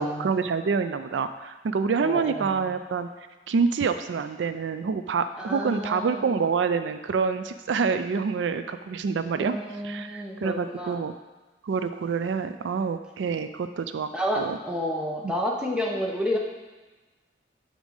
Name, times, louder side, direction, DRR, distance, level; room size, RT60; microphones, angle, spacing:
voice 1, 0.0-3.1 3.5-9.6 9.8-11.1 11.6-14.1 14.4-14.6 15.2-15.3, right 5 dB, 80° right, 10 dB, 0.4 m, -27 dB
voice 2, 2.0-2.7 5.4-6.3 9.3-11.0 14.1-16.4, equal, 5° right, -2 dB, 0.9 m, -30 dB
5.3 x 5.0 x 6.3 m, 1.2 s
head